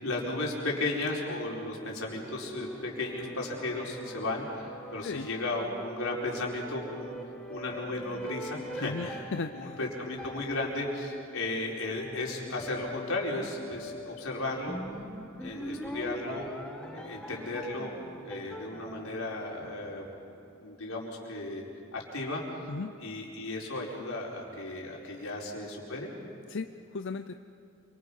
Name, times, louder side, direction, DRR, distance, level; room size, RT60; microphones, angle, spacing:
voice 1, 0.0-7.1 7.5-14.8 15.4-16.5 16.9-17.9 18.3-20.0 20.5-21.6 21.9-22.4 23.0-26.1, left 2 dB, 90° left, -2 dB, 4.7 m, -35 dB
sound 1, 1.8-20.3, equal, 5° left, 1.6 m, -43 dB
voice 2, 8.8-9.8 22.7-23.0 26.5-27.4, left 4 dB, 60° left, 8 dB, 0.6 m, -36 dB
28.0 x 25.0 x 5.6 m, 2.8 s
head